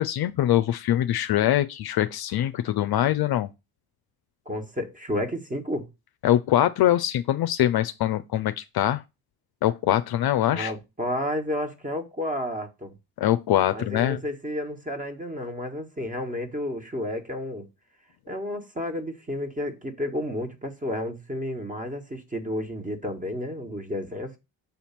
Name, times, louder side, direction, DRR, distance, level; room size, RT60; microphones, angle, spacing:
voice 1, 0.0-3.5 6.2-9.0 9.6-10.7 13.2-14.2, left 12 dB, 50° left, 0.6 m, -23 dB
voice 2, 4.4-5.9 10.5-12.9 13.7-17.7 18.3-24.3, left 1 dB, 15° right, 1.7 m, -31 dB
7.1 x 2.8 x 5.9 m
hypercardioid pair, 55°, 49 cm